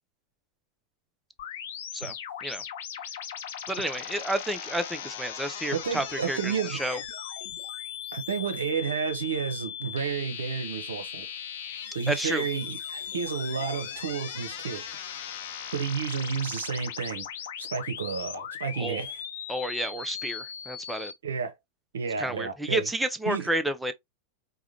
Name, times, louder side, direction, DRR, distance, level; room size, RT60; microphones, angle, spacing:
sound 1, 1.4-21.1, left 9 dB, 55° left, 0.6 m, -38 dB
voice 1, 3.7-7.0 12.1-12.5 18.8-19.0 19.5-21.1 22.2-23.9, right 1 dB, 5° right, 0.5 m, -30 dB
voice 2, 5.7-7.0 8.1-11.2 11.9-14.8 15.7-17.3 17.6-19.2 21.2-21.5 21.9-22.9 23.3-23.5, right 6 dB, 65° right, 0.8 m, -31 dB
4.8 x 2.2 x 2.8 m
figure-of-eight pair, 90°, 0 cm